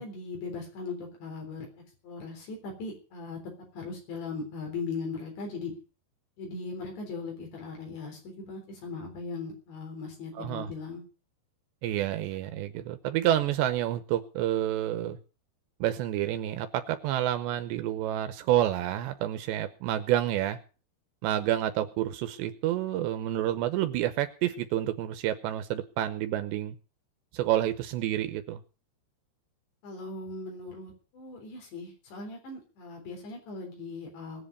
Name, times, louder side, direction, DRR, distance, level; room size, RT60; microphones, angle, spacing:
voice 1, 0.0-1.7 2.0-3.4 3.7-5.7 6.4-11.0 29.8-34.5, left 4 dB, 75° left, 1 dB, 6.0 m, -39 dB
voice 2, 10.4-10.7 11.8-15.2 15.8-20.6 21.2-26.8 27.3-28.6, right 12 dB, 80° right, 9 dB, 3.0 m, -29 dB
20.0 x 7.8 x 6.7 m, 0.36 s
omnidirectional pair, 5.1 m